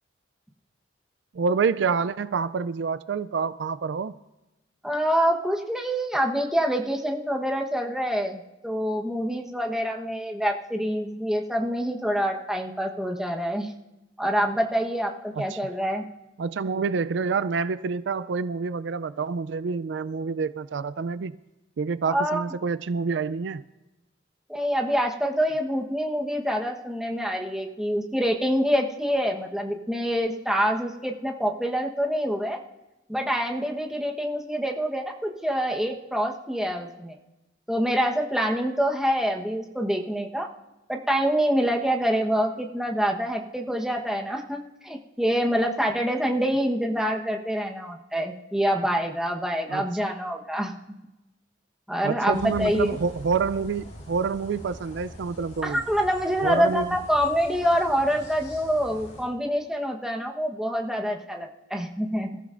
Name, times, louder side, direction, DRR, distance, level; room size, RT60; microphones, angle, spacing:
voice 1, 1.3-4.1 15.4-15.6 16.4-21.4 21.8-23.6 49.7-49.8 52.0-55.8 56.4-56.9, right 5 dB, 65° right, 0.4 m, -27 dB
voice 2, 4.8-13.7 14.2-16.1 22.1-22.4 24.5-32.6 33.1-37.2 37.7-40.5 40.9-50.7 51.9-53.0 55.6-62.4, equal, 5° right, 1.1 m, -26 dB
sound 1, 52.3-59.2, equal, 40° left, 4.4 m, -43 dB
27.0 x 14.5 x 2.5 m
head